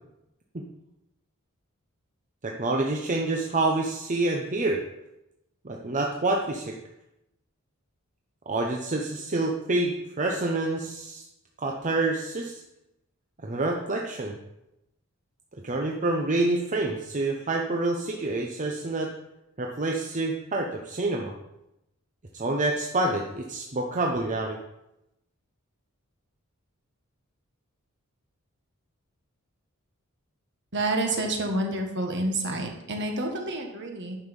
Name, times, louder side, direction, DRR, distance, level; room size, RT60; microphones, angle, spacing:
voice 1, 2.4-4.8 5.6-6.7 8.5-11.2 11.6-12.5 13.4-14.4 15.6-19.1 19.6-21.3 22.3-24.6, right 2 dB, 35° right, 0 dB, 0.8 m, -27 dB
voice 2, 30.7-34.2, right 2 dB, 55° right, 3 dB, 1.7 m, -28 dB
10.0 x 6.4 x 5.3 m, 0.89 s
head